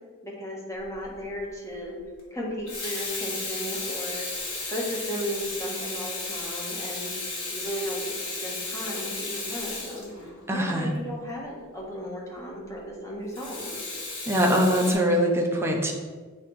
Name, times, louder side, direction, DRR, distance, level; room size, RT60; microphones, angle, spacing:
voice 1, 0.2-2.0 2.3-4.3 4.7-7.2 7.5-13.7, equal, 15° left, -4 dB, 1.4 m, -35 dB
Water tap faucet / Sink (filling or washing), 0.9-1.1 2.5-10.7 13.3-14.9, left 3 dB, 60° left, 1.6 m, -34 dB
voice 2, 10.5-10.9 14.3-15.9, equal, 10° right, 0 dB, 0.8 m, -22 dB
7.6 x 3.0 x 4.8 m, 1.4 s
head